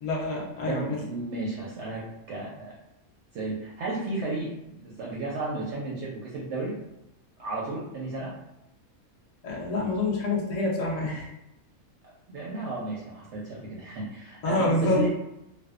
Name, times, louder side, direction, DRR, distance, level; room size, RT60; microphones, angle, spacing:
voice 1, 0.0-1.0 9.4-11.3 14.4-15.0, left 2 dB, 70° left, -3 dB, 0.3 m, -27 dB
voice 2, 0.7-2.7 3.3-6.8 7.4-8.3 12.3-15.1, right 2 dB, 65° right, -5 dB, 0.7 m, -33 dB
2.5 x 2.2 x 2.3 m, 0.88 s
omnidirectional pair, 1.5 m